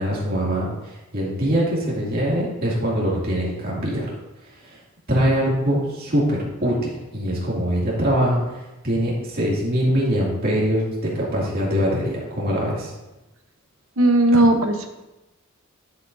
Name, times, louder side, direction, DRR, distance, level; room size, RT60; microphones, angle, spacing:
voice 1, 0.0-4.1 4.7-4.8 5.1-8.4 8.8-12.9, equal, 45° right, -5 dB, 2.6 m, -23 dB
voice 2, 14.0-14.9, right 1 dB, 70° right, 4 dB, 1.0 m, -17 dB
10.5 x 8.0 x 2.7 m, 1.0 s
head